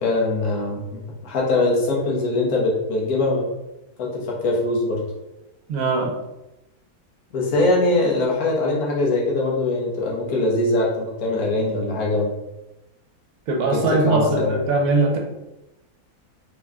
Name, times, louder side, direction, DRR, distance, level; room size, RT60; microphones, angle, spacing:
voice 1, 0.0-3.4 4.0-5.0 7.3-12.3 13.7-14.6, left 2 dB, 75° left, -3 dB, 1.4 m, -22 dB
voice 2, 5.7-6.1 13.5-15.2, right 3 dB, 75° right, 1 dB, 1.1 m, -20 dB
3.6 x 2.2 x 3.5 m, 0.94 s
omnidirectional pair, 1.6 m